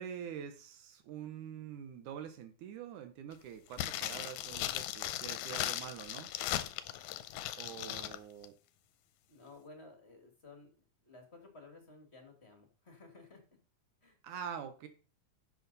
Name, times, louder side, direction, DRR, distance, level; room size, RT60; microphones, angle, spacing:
voice 1, 0.0-6.3 7.6-8.5 14.2-14.9, right 8 dB, 80° right, 8 dB, 2.4 m, -45 dB
sound 1, 3.7-8.2 8.4-8.5, left 13 dB, 80° left, 1.9 m, -38 dB
voice 2, 7.3-8.1 9.3-10.7 11.0-13.4 14.0-14.2, left 3 dB, 25° left, 4 dB, 1.6 m, -56 dB
10.5 x 6.7 x 4.0 m, 0.36 s
omnidirectional pair, 3.5 m